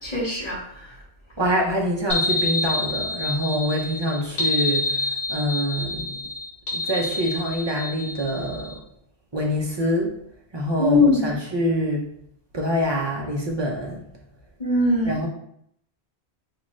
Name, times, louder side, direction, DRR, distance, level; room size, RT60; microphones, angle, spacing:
voice 1, 0.0-0.9 10.8-11.4 14.6-15.2, left 2 dB, 35° left, -6 dB, 1.5 m, -21 dB
voice 2, 1.4-6.1 6.7-8.7 9.3-10.1 10.5-12.1 12.5-14.0 15.1-15.3, equal, 30° right, -2 dB, 0.5 m, -25 dB
sound 1, 2.1-8.7, left 2 dB, 60° left, 1.0 m, -27 dB
5.0 x 2.4 x 3.1 m, 0.71 s
omnidirectional pair, 1.1 m